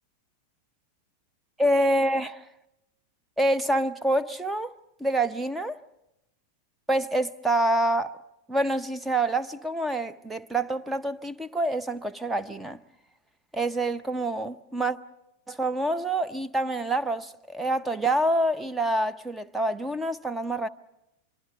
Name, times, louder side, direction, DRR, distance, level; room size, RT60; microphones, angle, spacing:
voice 1, 1.6-2.5 3.4-4.7 5.0-5.8 6.9-8.2 8.5-12.8 13.5-15.0 15.5-20.7, right 1 dB, 10° right, 0.8 m, -26 dB
25.0 x 23.5 x 6.3 m
figure-of-eight pair, 90°, 0 cm